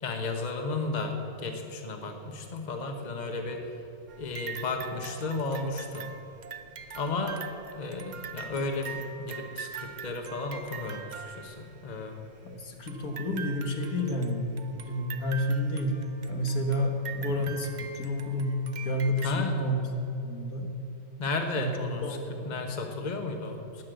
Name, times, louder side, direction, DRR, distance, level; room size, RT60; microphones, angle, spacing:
voice 1, 0.0-3.6 4.2-6.1 6.9-7.4 7.8-12.2 16.6-16.8 19.2-19.6 21.2-22.2 22.4-23.8, left 3 dB, 30° left, 4 dB, 1.2 m, -33 dB
sound 1, 4.1-12.0 12.9-19.3, right 6 dB, 50° right, 0.5 m, -43 dB
voice 2, 12.4-16.0 16.3-19.8 20.1-20.7 21.6-21.8 22.0-22.5, left 1 dB, 75° left, 3 dB, 1.9 m, -30 dB
12.5 x 10.0 x 7.7 m, 2.9 s
omnidirectional pair, 1.6 m